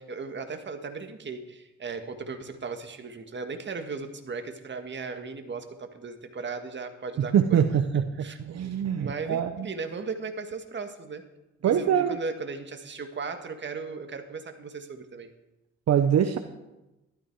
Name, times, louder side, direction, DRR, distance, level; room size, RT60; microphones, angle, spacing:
voice 1, 0.0-7.7 8.2-11.2 11.6-15.3, right 4 dB, 35° right, 6 dB, 1.8 m, -37 dB
voice 2, 7.2-9.7 11.6-12.2 15.9-16.4, right 8 dB, 60° right, 8 dB, 0.9 m, -24 dB
14.0 x 12.5 x 4.7 m, 1.0 s
cardioid pair, 90°, 30 cm